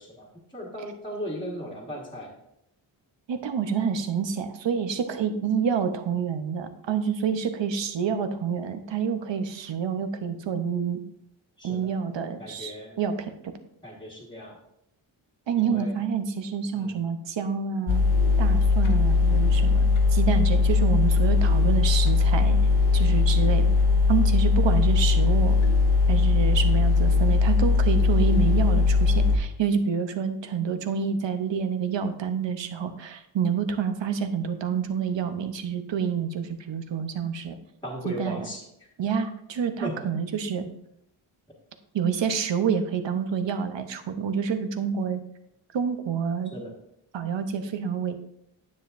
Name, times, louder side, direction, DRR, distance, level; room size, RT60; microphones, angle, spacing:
voice 1, 0.0-2.3 11.6-11.9 12.4-12.9 13.8-14.6 15.6-15.9 16.7-17.0 37.8-38.6 39.8-39.9 46.5-46.7, equal, 10° left, -5 dB, 1.5 m, -37 dB
voice 2, 3.3-11.0 11.6-13.5 15.5-18.0 18.4-22.6 22.9-23.7 24.1-25.6 26.1-37.6 38.0-38.5 39.0-40.7 41.9-45.2 45.7-46.5 47.1-48.2, right 6 dB, 65° right, 9 dB, 0.8 m, -28 dB
sound 1, 17.9-29.4, left 4 dB, 80° left, 1.0 m, -20 dB
9.6 x 7.3 x 2.5 m, 0.80 s
wide cardioid pair, 115°, 47 cm